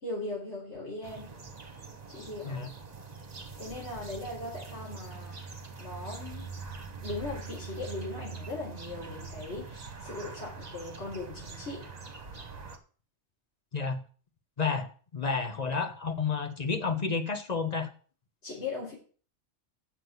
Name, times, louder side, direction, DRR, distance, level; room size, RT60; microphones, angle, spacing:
voice 1, 0.0-1.4 2.1-2.7 3.6-5.4 5.8-6.5 7.0-11.8 18.4-18.9, left 2 dB, 65° left, -6 dB, 3.8 m, -39 dB
sound 1, 1.0-12.8, right 4 dB, 35° right, 1.2 m, -43 dB
voice 2, 13.7-14.0 14.6-17.9, left 5 dB, 35° left, 6 dB, 1.3 m, -31 dB
7.6 x 6.3 x 8.0 m, 0.41 s
omnidirectional pair, 1.2 m